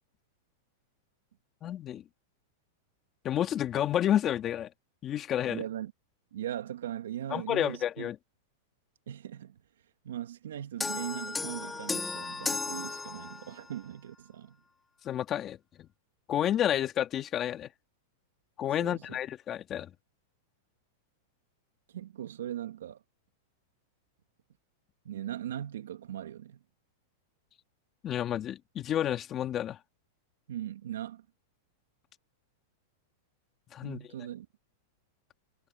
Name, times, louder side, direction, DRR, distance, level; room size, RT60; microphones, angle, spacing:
voice 1, 1.6-2.0 3.2-4.7 5.0-5.6 7.3-8.2 15.0-15.9 16.3-17.7 18.6-19.9 28.0-29.8 33.7-34.0, left 11 dB, 25° left, 2.6 m, -30 dB
voice 2, 5.5-5.9 6.3-8.1 9.1-9.6 10.0-14.6 18.8-19.2 21.9-23.0 25.0-26.6 30.5-31.3 33.8-34.5, right 11 dB, 85° right, 2.2 m, -39 dB
sound 1, 10.8-13.7, left 4 dB, 10° left, 2.9 m, -35 dB
supercardioid pair, 145°, 0 cm